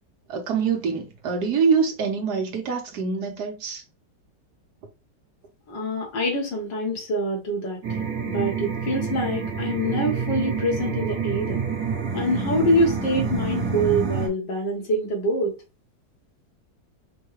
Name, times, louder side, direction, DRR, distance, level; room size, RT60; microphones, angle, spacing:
voice 1, 0.3-3.8, right 5 dB, 65° right, 1.4 m, -25 dB
voice 2, 5.7-11.6 12.1-15.5, equal, 85° left, 2.1 m, -25 dB
sound 1, 7.8-14.3, right 5 dB, 50° right, 1.7 m, -27 dB
5.3 x 2.2 x 3.1 m
omnidirectional pair, 1.9 m